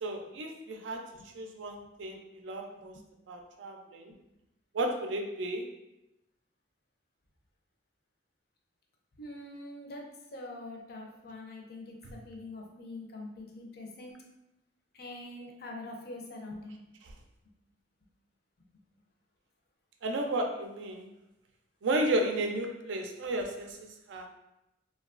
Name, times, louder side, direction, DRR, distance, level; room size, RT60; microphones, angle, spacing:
voice 1, 0.0-1.1 1.3-2.9 3.3-4.1 4.7-5.7 20.0-21.1 21.8-23.8 24.1-24.3, right 1 dB, 80° right, 3 dB, 0.4 m, -33 dB
voice 2, 9.2-14.2 14.9-16.8, left 2 dB, 55° left, 1 dB, 0.5 m, -44 dB
3.0 x 2.2 x 2.4 m, 0.93 s
head